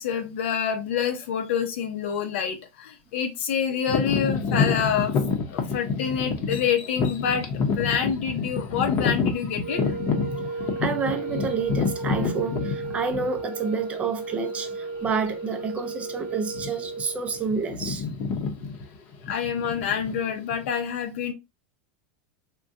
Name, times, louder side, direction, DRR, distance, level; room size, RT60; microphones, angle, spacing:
voice 1, 0.0-5.2 5.5-9.8 19.3-21.3, left 7 dB, 75° left, 0.7 m, -27 dB
sound 1, 3.9-13.6 14.3-14.4 15.0-15.3 15.6-15.8 16.4-17.0 17.3-20.7, left 5 dB, 40° left, 0.7 m, -28 dB
sound 2, 9.5-17.7, right 3 dB, 85° right, 0.7 m, -35 dB
voice 2, 10.3-18.0, right 5 dB, 20° right, 0.5 m, -29 dB
3.6 x 2.2 x 2.6 m
supercardioid pair, 150°, 6 cm